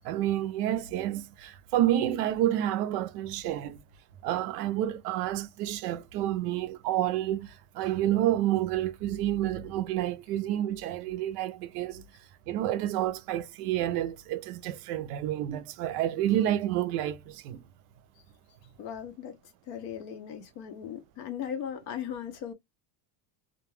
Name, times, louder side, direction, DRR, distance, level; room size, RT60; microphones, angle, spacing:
voice 1, 0.0-3.8 4.2-12.0 12.5-17.6, right 12 dB, 70° right, 0.6 m, -29 dB
voice 2, 18.8-19.4 19.7-22.5, left 8 dB, 40° left, 0.4 m, -38 dB
2.2 x 2.2 x 3.1 m
cardioid pair, 165°, 49 cm